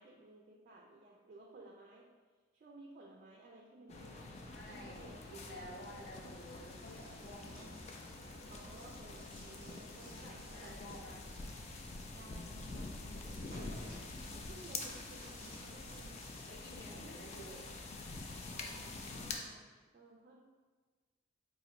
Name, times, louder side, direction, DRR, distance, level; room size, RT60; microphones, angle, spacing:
voice 1, 0.0-2.1 2.5-5.2 8.5-11.2 12.1-16.2 16.9-17.1 17.4-17.8 18.5-20.4, right 2 dB, 45° right, -1 dB, 0.3 m, -57 dB
sound 1, 3.9-19.4, left 3 dB, 35° left, 0.3 m, -47 dB
voice 2, 4.5-7.5 10.1-11.2 16.3-17.7, equal, 50° left, -3 dB, 0.7 m, -52 dB
sound 2, 5.1-19.2, left 1 dB, 70° left, 1.3 m, -57 dB
3.0 x 2.5 x 4.0 m, 1.4 s
head